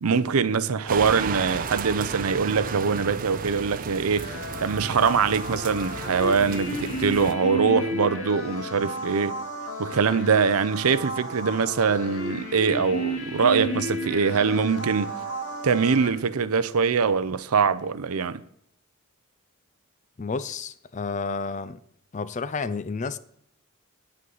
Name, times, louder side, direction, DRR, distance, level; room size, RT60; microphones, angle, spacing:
voice 1, 0.0-4.4 4.6-9.4 9.8-15.1 15.6-18.4, right 5 dB, 85° right, 0.6 m, -23 dB
sound 1, 0.9-7.3, right 5 dB, 40° right, 0.5 m, -34 dB
sound 2, 4.2-16.1, right 1 dB, 70° left, 2.5 m, -33 dB
voice 2, 20.2-21.8 22.1-23.2, left 4 dB, 35° left, 0.4 m, -31 dB
9.2 x 8.5 x 4.0 m
head